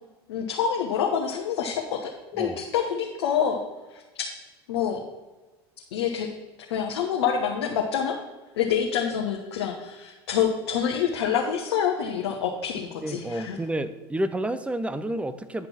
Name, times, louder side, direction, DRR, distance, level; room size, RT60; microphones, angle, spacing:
voice 1, 0.3-3.6 3.9-4.3 4.7-5.0 5.9-6.3 6.7-8.2 8.6-13.6, left 8 dB, 75° left, 0 dB, 1.1 m, -27 dB
voice 2, 13.0-15.7, right 1 dB, 10° right, 12 dB, 0.7 m, -30 dB
9.7 x 5.3 x 5.9 m, 1.2 s
hypercardioid pair, 80°, 14 cm